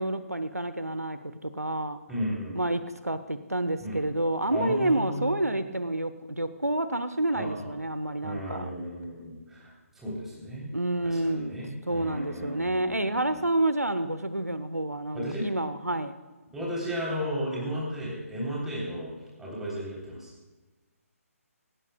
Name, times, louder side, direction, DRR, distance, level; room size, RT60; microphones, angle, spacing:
voice 1, 0.0-2.0 2.5-8.7 10.7-11.6 11.9-16.1, right 1 dB, 85° right, 11 dB, 0.9 m, -29 dB
voice 2, 2.1-2.6 3.8-4.0 4.5-5.5 7.4-7.7 8.2-9.7 10.0-10.7 11.0-13.1 15.1-15.5 16.5-19.1 19.4-20.3, equal, 5° right, -5 dB, 3.5 m, -34 dB
18.5 x 17.5 x 2.3 m, 1.2 s
figure-of-eight pair, 145°, 8 cm